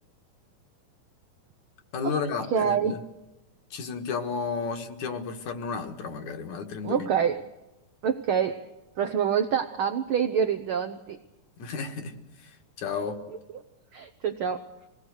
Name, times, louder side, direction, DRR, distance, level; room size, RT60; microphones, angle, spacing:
voice 1, 1.9-3.0 3.7-7.1 11.6-12.1 12.8-13.2, left 5 dB, 70° left, 4 dB, 3.0 m, -32 dB
voice 2, 2.5-2.9 6.8-7.5 8.0-8.7 9.0-11.2 13.5-13.6 13.9-14.7, right 7 dB, 80° right, 8 dB, 1.2 m, -26 dB
26.0 x 19.0 x 6.4 m, 1.0 s
omnidirectional pair, 3.6 m